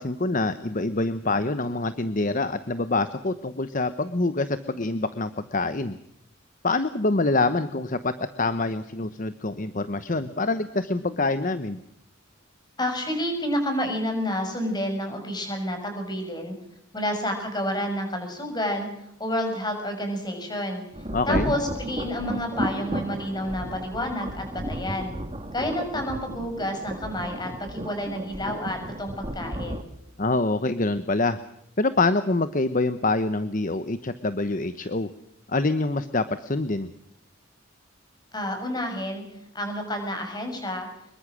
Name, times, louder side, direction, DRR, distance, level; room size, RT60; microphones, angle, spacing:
voice 1, 0.0-6.0 6.6-11.8 21.1-21.5 30.2-31.4 31.8-35.1 35.5-36.9, left 2 dB, 40° left, 11 dB, 1.0 m, -25 dB
voice 2, 12.8-16.5 16.9-20.8 21.3-25.1 25.5-29.9 38.3-39.2 39.5-40.9, left 1 dB, 20° left, 5 dB, 6.8 m, -29 dB
sound 1, 20.9-29.8, right 1 dB, 30° right, 2.0 m, -33 dB
25.5 x 22.5 x 6.3 m, 0.77 s
head